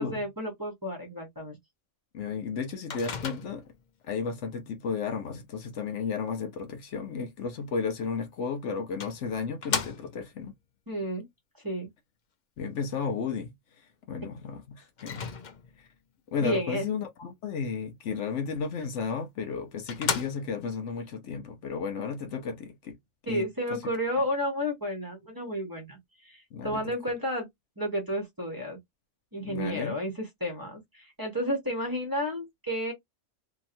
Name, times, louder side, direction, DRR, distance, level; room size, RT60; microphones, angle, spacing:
voice 1, 0.0-1.6 10.9-11.3 11.6-11.9 16.4-16.9 23.3-27.5 27.8-28.8 29.3-32.9, equal, 20° right, 1.0 m, -32 dB
voice 2, 2.1-3.6 4.1-10.5 12.6-13.5 14.1-15.3 16.3-23.0 23.3-23.8 26.5-26.9 29.4-30.0, left 5 dB, 70° left, 1.0 m, -33 dB
Microwave oven, 2.9-3.8 8.2-8.3 9.0-10.4 15.0-15.9 19.0-19.1 19.5-19.6 19.9-20.8, left 6 dB, 50° left, 0.6 m, -34 dB
2.8 x 2.8 x 2.6 m
omnidirectional pair, 1.3 m